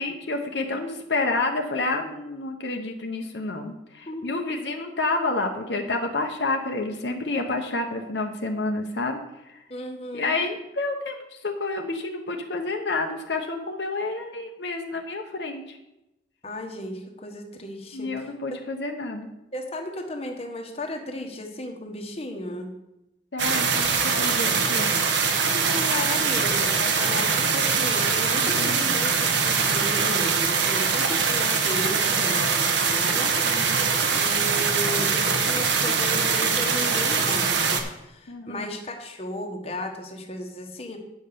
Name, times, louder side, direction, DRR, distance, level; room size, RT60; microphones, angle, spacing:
voice 1, 0.0-9.6 10.1-15.8 17.9-19.3 23.3-25.0 28.3-28.8 33.4-33.8 38.3-38.7, left 2 dB, 70° left, 3 dB, 1.0 m, -29 dB
voice 2, 9.7-10.4 16.4-18.1 19.5-22.7 25.5-33.3 34.1-41.0, left 1 dB, 35° left, 3 dB, 1.3 m, -34 dB
sound 1, 23.4-37.8, right 5 dB, 75° right, 1.2 m, -23 dB
9.2 x 5.6 x 6.7 m, 0.91 s
head